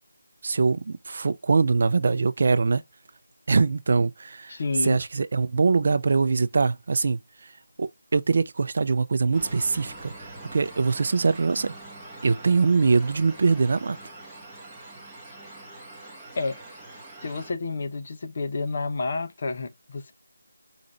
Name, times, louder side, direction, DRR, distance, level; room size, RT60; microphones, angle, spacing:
voice 1, 0.4-2.8 3.5-4.6 4.8-7.2 7.8-11.7 12.2-14.0, right 4 dB, 45° right, 0.4 m, -23 dB
voice 2, 4.5-5.0 16.3-16.6 17.2-20.1, left 3 dB, 35° left, 0.6 m, -30 dB
sound 1, 9.3-17.5, right 2 dB, 5° right, 0.9 m, -44 dB
5.0 x 2.5 x 4.2 m
figure-of-eight pair, 170°, 0 cm